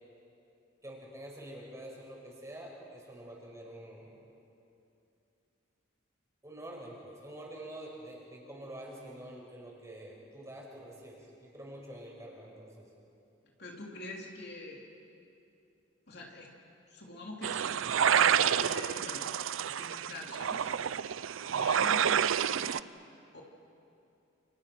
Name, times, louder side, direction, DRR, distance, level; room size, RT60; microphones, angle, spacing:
voice 1, 0.8-4.2 6.4-12.9, right 1 dB, 15° right, -2 dB, 5.9 m, -47 dB
voice 2, 13.6-14.8 16.1-16.5 16.9-19.3 19.5-20.7 21.5-22.8 23.3-23.4, left 2 dB, 55° left, -1 dB, 3.2 m, -44 dB
sound 1, 17.4-22.8, right 8 dB, 90° right, 0.5 m, -29 dB
29.5 x 29.5 x 6.2 m, 2.7 s
head